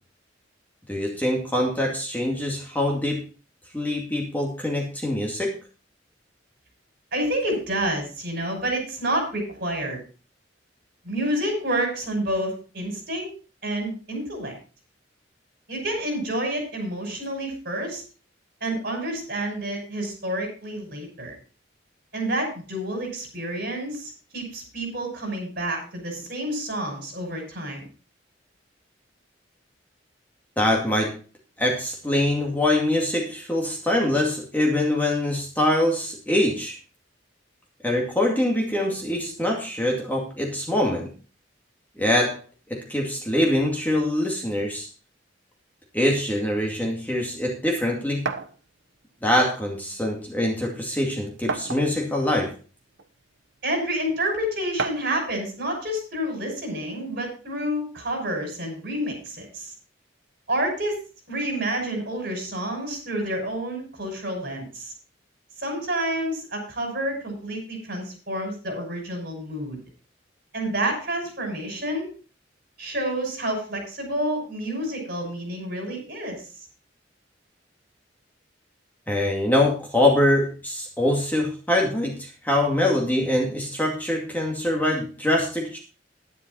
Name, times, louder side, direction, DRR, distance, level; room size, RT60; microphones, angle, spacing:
voice 1, 0.9-3.2 3.7-5.6 30.6-31.2 31.6-36.8 37.8-41.1 42.0-42.4 42.7-44.9 45.9-48.3 49.2-52.5 79.1-85.8, left 1 dB, 10° left, -1 dB, 2.3 m, -24 dB
voice 2, 7.1-10.0 11.0-13.3 13.6-14.6 15.7-18.0 18.6-21.3 22.1-27.9 53.6-59.7 60.5-61.0 61.3-64.9 65.6-69.8 70.5-72.1 72.8-76.5, right 1 dB, 55° right, 2 dB, 5.9 m, -29 dB
sound 1, 48.3-48.5 49.7-49.8 50.2-50.3 51.5-52.1 53.0-53.1 54.8-55.2, right 4 dB, 75° right, 1.1 m, -30 dB
11.0 x 10.5 x 4.1 m, 0.35 s
head